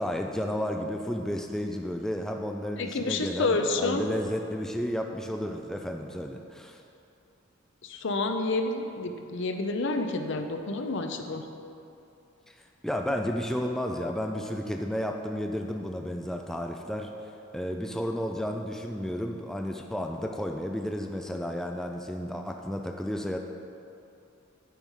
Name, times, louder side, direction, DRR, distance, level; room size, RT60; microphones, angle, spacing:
voice 1, 0.0-6.8 12.5-12.6 12.8-23.4, equal, ahead, 3 dB, 0.3 m, -32 dB
voice 2, 2.8-4.0 7.8-11.5, left 3 dB, 60° left, 6 dB, 0.6 m, -29 dB
9.2 x 4.7 x 5.5 m, 2.7 s
head